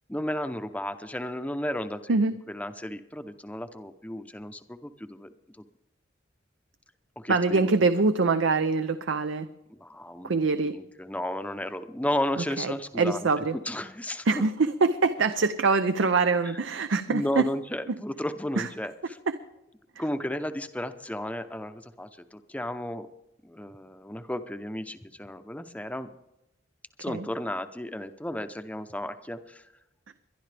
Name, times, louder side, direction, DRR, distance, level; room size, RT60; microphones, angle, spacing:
voice 1, 0.1-2.2 2.5-5.3 7.2-7.7 9.7-14.4 16.5-16.6 17.1-19.2 20.0-23.1 23.4-26.1 27.0-29.6, left 1 dB, 10° left, 9 dB, 0.7 m, -34 dB
voice 2, 7.3-9.5 10.2-10.7 12.6-13.6 14.3-17.4 18.6-18.7 27.1-27.3, right 3 dB, 80° right, 10 dB, 0.6 m, -24 dB
23.0 x 11.0 x 3.4 m, 0.90 s
head